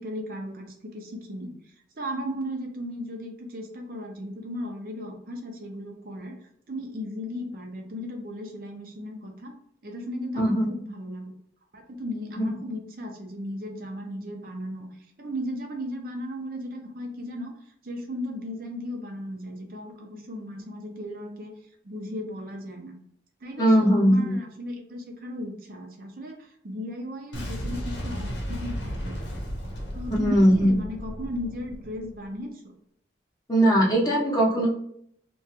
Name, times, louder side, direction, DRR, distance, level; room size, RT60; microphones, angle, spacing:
voice 1, 0.0-1.6 2.0-6.4 6.7-9.5 9.8-11.3 11.7-14.9 15.2-17.5 17.8-21.5 21.8-22.9 23.4-29.2 29.9-32.5, equal, 55° right, 2 dB, 0.5 m, -36 dB
voice 2, 10.4-10.7 12.4-12.5 23.6-24.3 30.1-30.7 33.5-34.7, equal, 20° left, -4 dB, 0.7 m, -20 dB
Boom, 27.3-32.2, equal, 80° left, 0.7 m, -34 dB
2.9 x 2.3 x 2.8 m, 0.69 s
head